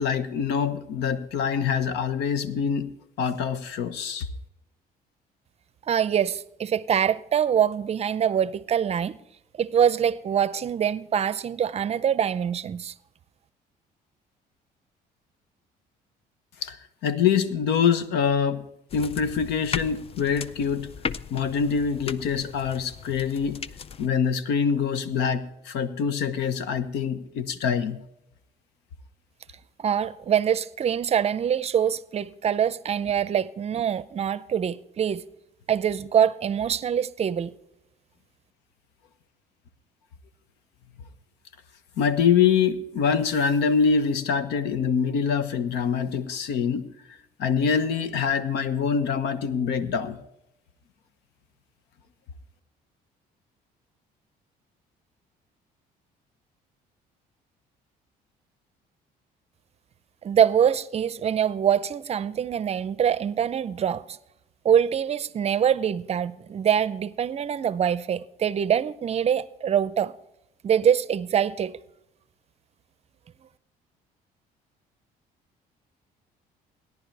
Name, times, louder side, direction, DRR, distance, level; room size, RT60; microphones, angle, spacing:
voice 1, 0.0-2.9 3.2-4.3 16.6-16.8 17.0-18.7 18.9-20.9 21.3-23.6 24.0-28.0 42.0-46.9 47.4-50.2, left 6 dB, 85° left, 1.0 m, -25 dB
voice 2, 5.9-9.2 9.6-12.9 29.8-35.2 35.7-37.6 60.2-64.2 64.6-70.1 70.6-71.8, right 8 dB, 40° right, 0.5 m, -24 dB
sound 1, 18.9-24.1, left 6 dB, 35° left, 0.5 m, -37 dB
17.0 x 10.5 x 3.3 m
cardioid pair, 110°, 17 cm